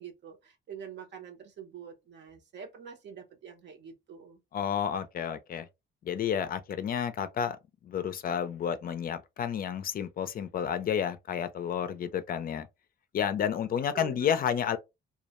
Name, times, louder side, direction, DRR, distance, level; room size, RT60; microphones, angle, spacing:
voice 1, 0.0-4.4 13.9-14.4, right 8 dB, 60° right, 0.8 m, -46 dB
voice 2, 4.5-5.7 6.0-7.6 7.8-12.7 13.1-14.8, left 8 dB, 50° left, 0.4 m, -31 dB
2.3 x 2.1 x 2.8 m
cardioid pair, 90°, 20 cm